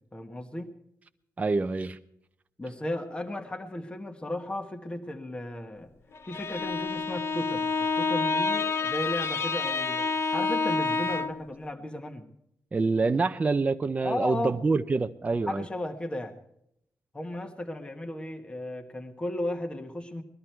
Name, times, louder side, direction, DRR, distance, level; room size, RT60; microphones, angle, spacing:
voice 1, 0.1-0.8 2.6-5.9 6.3-12.3 14.0-14.6 15.5-16.3 17.1-20.2, left 1 dB, 15° left, 5 dB, 1.4 m, -35 dB
voice 2, 1.4-2.0 12.7-15.6, right 3 dB, 25° right, 8 dB, 0.6 m, -26 dB
Bowed string instrument, 6.1-11.5, left 4 dB, 45° left, 0.9 m, -28 dB
20.5 x 13.5 x 4.5 m, 0.76 s
wide cardioid pair, 145°, 6 cm